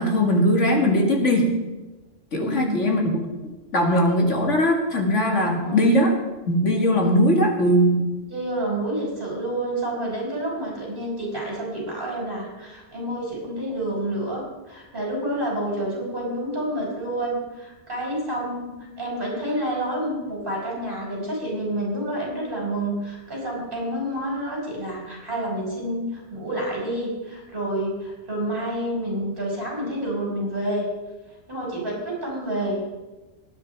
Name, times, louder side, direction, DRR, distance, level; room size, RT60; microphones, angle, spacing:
voice 1, 0.0-1.5 2.3-3.2 3.7-6.1 6.5-8.1, equal, 75° left, 2 dB, 2.4 m, -20 dB
voice 2, 2.4-2.9 5.6-6.0 8.3-30.9 31.5-32.8, right 1 dB, 45° right, -3 dB, 5.9 m, -29 dB
20.0 x 9.7 x 4.7 m, 1.1 s
omnidirectional pair, 1.3 m